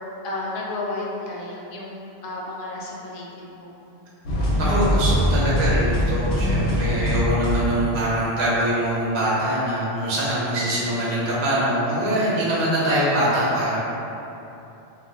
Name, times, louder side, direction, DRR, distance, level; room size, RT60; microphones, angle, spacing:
voice 1, 0.2-3.7, left 2 dB, 60° left, -4 dB, 0.7 m, -32 dB
sound 1, 4.2-8.0, equal, 85° left, 0.9 m, -22 dB
voice 2, 4.6-13.8, right 1 dB, 65° right, -8 dB, 0.9 m, -23 dB
2.3 x 2.1 x 3.6 m, 2.9 s
omnidirectional pair, 1.1 m